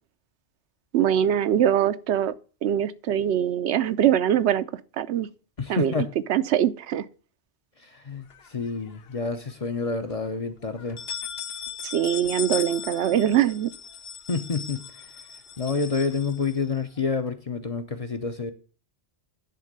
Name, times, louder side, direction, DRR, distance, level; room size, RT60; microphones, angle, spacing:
voice 1, 0.9-2.3 2.6-4.6 5.0-5.3 5.7-7.1 11.8-13.7, right 10 dB, 75° right, 0.9 m, -23 dB
voice 2, 5.6-6.1 7.8-11.0 14.3-15.1 15.6-18.5, left 4 dB, 40° left, 0.6 m, -28 dB
sound 1, 8.3-9.2 9.6-9.7 10.1-10.2 10.8-17.0, left 8 dB, 60° left, 0.9 m, -38 dB
10.5 x 3.7 x 6.5 m
omnidirectional pair, 1.2 m